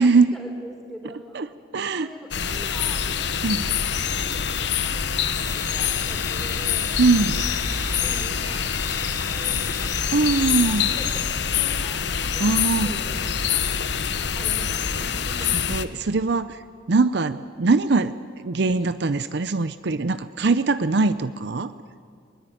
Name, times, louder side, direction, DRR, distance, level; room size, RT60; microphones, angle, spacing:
voice 1, 0.0-1.4 2.0-3.6 4.8-6.9 8.0-8.9 9.3-12.0 12.3-13.3 14.3-15.5, equal, ahead, 1 dB, 3.7 m, -43 dB
voice 2, 1.7-2.1 3.4-3.7 7.0-7.4 10.1-10.9 12.4-12.9 15.7-16.6 16.9-21.7, right 3 dB, 60° right, 13 dB, 0.6 m, -21 dB
sound 1, 2.3-15.9, left 7 dB, 60° left, 1.0 m, -25 dB
sound 2, 5.2-11.2, left 5 dB, 20° left, 0.7 m, -38 dB
sound 3, 7.3-12.3, right 1 dB, 15° right, 0.9 m, -40 dB
21.0 x 21.0 x 9.1 m, 2.2 s
head